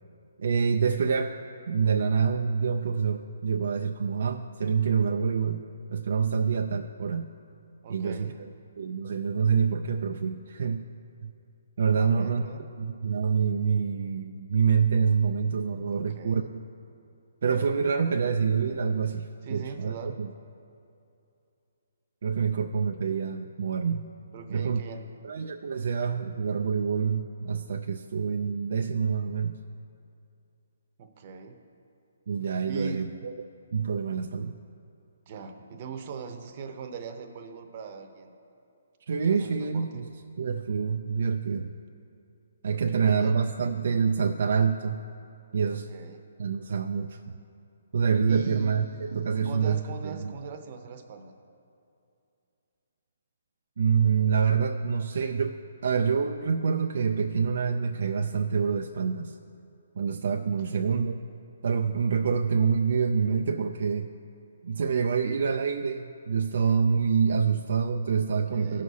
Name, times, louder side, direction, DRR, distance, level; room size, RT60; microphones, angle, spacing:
voice 1, 0.4-1.3 1.7-5.6 5.9-7.3 7.9-8.5 8.8-10.9 11.2-11.3 11.8-12.4 12.8-16.5 17.4-20.3 22.2-24.1 24.5-24.8 25.2-29.6 32.3-33.3 33.7-34.5 39.1-40.1 40.4-41.8 42.6-45.0 45.5-45.9 46.4-47.4 47.9-50.3 53.8-59.4 60.0-61.2 61.6-64.1 64.6-68.8, right 6 dB, 65° right, 4 dB, 0.4 m, -26 dB
voice 2, 7.8-8.4 11.9-12.7 15.9-16.5 19.4-20.2 24.3-25.1 31.0-31.6 32.7-33.0 35.3-38.3 39.2-40.0 42.6-43.4 45.7-46.2 48.3-51.3 60.7-61.0 68.3-68.8, right 5 dB, 40° right, 6 dB, 0.8 m, -41 dB
16.0 x 6.2 x 2.8 m, 2.6 s
hypercardioid pair, 145°, 0 cm